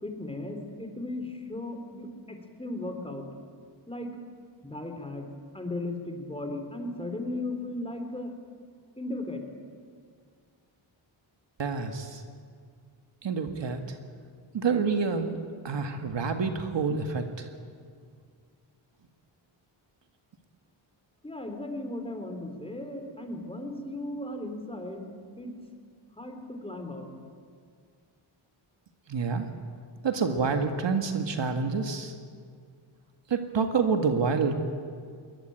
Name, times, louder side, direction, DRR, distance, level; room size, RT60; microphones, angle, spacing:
voice 1, 0.0-3.3 3.9-4.1 4.6-5.3 5.5-8.3 9.0-9.4 21.2-25.0 25.4-25.5 26.2-27.1, left 2 dB, 10° left, 4 dB, 4.0 m, -36 dB
voice 2, 11.6-12.2 13.2-14.0 14.5-15.4 15.6-17.5 29.1-29.5 30.0-32.1 33.3-34.6, right 5 dB, 60° right, 6 dB, 2.0 m, -28 dB
22.0 x 20.5 x 9.1 m, 2.1 s
cardioid pair, 80°, 49 cm